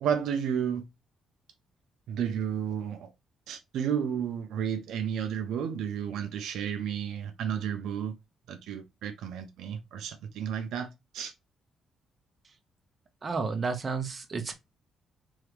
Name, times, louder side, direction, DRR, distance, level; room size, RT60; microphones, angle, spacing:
voice 1, 0.0-0.8 2.1-3.1 3.5-8.1 8.5-11.3, right 8 dB, 80° right, 0.7 m, -32 dB
voice 2, 13.2-14.5, right 4 dB, 35° right, 1.0 m, -31 dB
3.6 x 3.2 x 3.2 m
cardioid pair, 90°, 0 cm